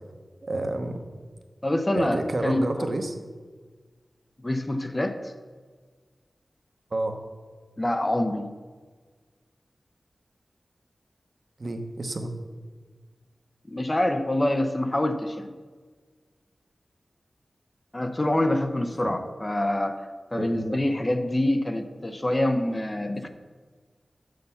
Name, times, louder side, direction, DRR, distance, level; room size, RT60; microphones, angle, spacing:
voice 1, 0.4-1.0 2.0-3.1 6.9-7.2 11.6-12.3 19.0-19.2 20.4-20.8, right 2 dB, 55° right, 6 dB, 0.8 m, -29 dB
voice 2, 1.6-2.9 4.4-5.3 7.8-8.5 13.7-15.5 17.9-23.3, left 1 dB, 25° left, 7 dB, 0.6 m, -26 dB
6.8 x 6.5 x 5.6 m, 1.5 s
wide cardioid pair, 75°, 0 cm